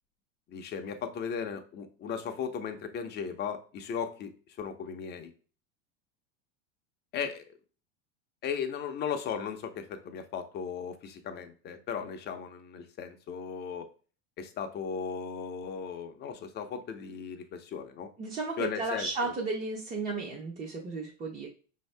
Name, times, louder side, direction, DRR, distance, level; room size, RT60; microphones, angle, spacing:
voice 1, 0.5-4.3 4.6-5.3 7.1-7.4 8.4-13.9 14.4-18.1 18.6-19.3, left 7 dB, 25° left, 6 dB, 0.6 m, -36 dB
voice 2, 18.2-21.5, right 3 dB, 20° right, -2 dB, 0.7 m, -34 dB
5.1 x 2.8 x 3.2 m, 0.39 s
supercardioid pair, 125°, 38 cm